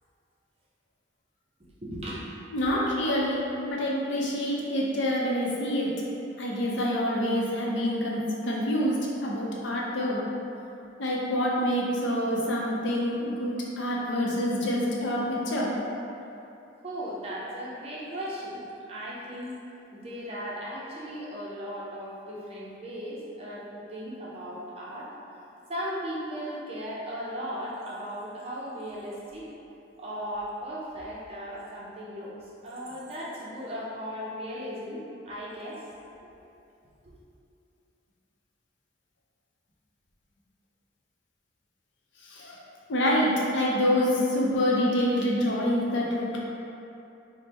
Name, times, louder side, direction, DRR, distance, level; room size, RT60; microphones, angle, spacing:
voice 1, 1.8-2.2 3.0-3.1 16.8-18.6 18.9-19.5 19.9-25.1 25.7-29.5 30.0-32.3 32.6-35.8 37.0-37.2 46.3-46.4, equal, 30° right, -6 dB, 0.6 m, -37 dB
voice 2, 2.5-5.9 6.4-8.9 9.2-10.2 11.0-15.7 42.3-42.6 42.9-46.4, left 1 dB, 70° left, -4 dB, 0.6 m, -26 dB
3.4 x 2.1 x 4.2 m, 2.8 s
head